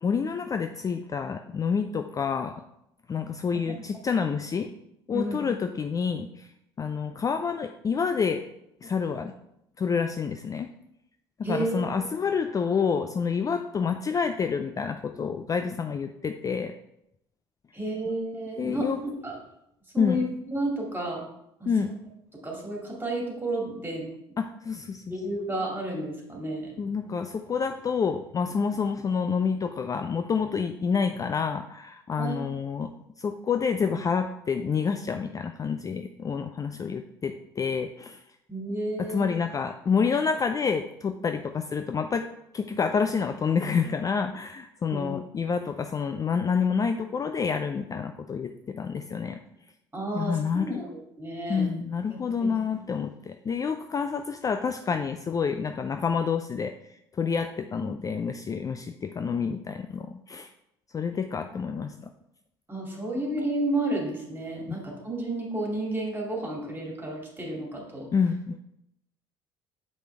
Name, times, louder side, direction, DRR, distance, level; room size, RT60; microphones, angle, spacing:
voice 1, 0.0-2.5 3.1-4.7 5.1-6.5 6.8-8.4 8.8-9.3 9.8-10.7 11.4-16.7 18.6-19.0 20.0-20.2 21.7-21.9 24.4-25.1 26.8-32.9 33.2-38.2 39.0-42.3 42.5-49.4 50.2-50.8 51.5-60.5 60.9-62.1 68.1-68.6, left 6 dB, 25° left, 7 dB, 0.4 m, -28 dB
voice 2, 11.4-11.8 17.7-18.9 19.2-19.4 19.9-20.2 20.5-21.2 21.6-21.7 22.4-24.1 25.1-26.7 32.2-32.4 38.5-39.3 44.9-45.1 49.9-51.7 52.1-52.5 62.7-68.1, right 1 dB, 15° right, -1 dB, 2.5 m, -31 dB
7.4 x 5.0 x 3.4 m, 0.81 s
hypercardioid pair, 60°, 13 cm